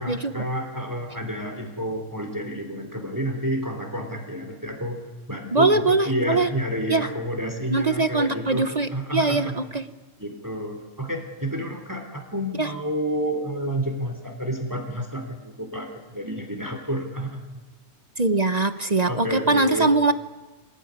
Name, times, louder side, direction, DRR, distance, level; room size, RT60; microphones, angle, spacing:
voice 1, 0.0-5.0 5.3-9.6 10.2-17.4 19.1-19.9, equal, 15° right, 4 dB, 3.3 m, -30 dB
voice 2, 5.5-6.5 6.9-7.1 7.7-9.8 12.6-12.7 18.2-20.1, right 3 dB, 35° right, 11 dB, 0.9 m, -22 dB
26.0 x 18.5 x 9.8 m, 1.2 s
omnidirectional pair, 1.4 m